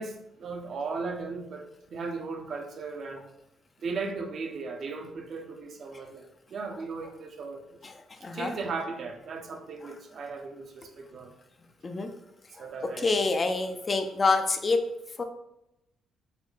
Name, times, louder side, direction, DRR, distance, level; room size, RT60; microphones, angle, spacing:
voice 1, 0.0-3.3 3.8-7.8 8.3-11.3 12.6-13.1, right 4 dB, 55° right, 4 dB, 0.5 m, -37 dB
voice 2, 7.8-8.5 11.8-12.1 12.6-12.7 13.0-14.8 15.2-15.3, left 3 dB, 35° left, 6 dB, 0.4 m, -27 dB
4.0 x 2.1 x 3.1 m, 0.86 s
cardioid pair, 90°, 0 cm